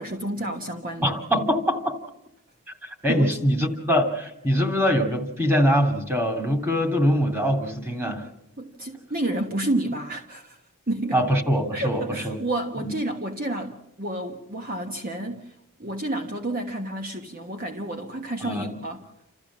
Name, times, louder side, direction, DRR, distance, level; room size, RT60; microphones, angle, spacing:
voice 1, 0.0-1.2 3.1-3.4 8.6-10.6 10.9-11.2 11.7-15.5 15.8-19.0, right 1 dB, 40° right, 4 dB, 1.4 m, -30 dB
voice 2, 1.0-2.0 2.8-8.3 11.1-12.4 12.8-12.9 18.4-18.8, equal, 10° right, 5 dB, 2.5 m, -23 dB
29.0 x 14.0 x 7.3 m, 0.84 s
head